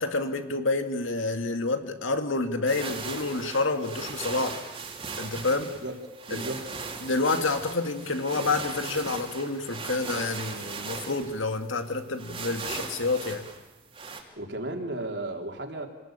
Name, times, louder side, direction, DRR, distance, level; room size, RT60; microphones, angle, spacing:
voice 1, 0.0-4.6 5.2-5.7 6.3-6.5 7.0-13.5, left 3 dB, 85° left, 7 dB, 2.2 m, -28 dB
sound 1, 2.7-14.2, right 4 dB, 30° right, 3.0 m, -38 dB
voice 2, 6.3-6.6 14.4-15.9, right 2 dB, 60° right, 2 dB, 3.6 m, -34 dB
27.5 x 19.5 x 9.0 m, 1.1 s
head